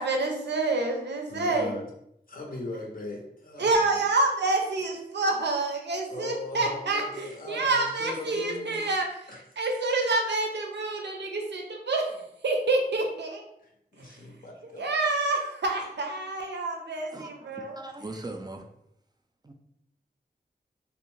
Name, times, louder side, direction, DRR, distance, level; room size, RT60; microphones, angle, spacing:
voice 1, 0.0-1.7 3.6-9.2 9.6-12.2 12.4-13.4 14.6-17.8, right 2 dB, 80° right, 2 dB, 0.5 m, -27 dB
voice 2, 1.3-1.9 2.3-3.7 6.1-8.9 9.3-9.4 13.6-14.9, left 2 dB, 55° left, 1 dB, 0.6 m, -39 dB
voice 3, 17.1-18.7 19.4-19.5, right 2 dB, 25° right, 3 dB, 0.4 m, -40 dB
2.5 x 2.1 x 3.0 m, 0.77 s
wide cardioid pair, 60°, 18 cm